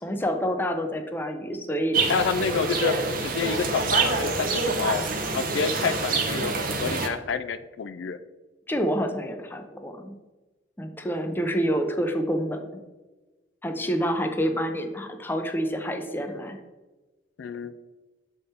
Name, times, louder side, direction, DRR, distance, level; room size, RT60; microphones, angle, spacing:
voice 1, 0.0-2.1 8.7-10.2 10.8-12.8 13.6-16.6, equal, 10° left, 5 dB, 0.5 m, -28 dB
sound 1, 1.9-7.1, right 4 dB, 50° right, 0.8 m, -26 dB
voice 2, 2.1-2.9 3.2-5.0 5.3-6.5 6.8-8.2 13.8-14.0 17.4-17.7, left 6 dB, 90° left, 11 dB, 0.4 m, -28 dB
6.6 x 3.6 x 4.2 m, 1.2 s
head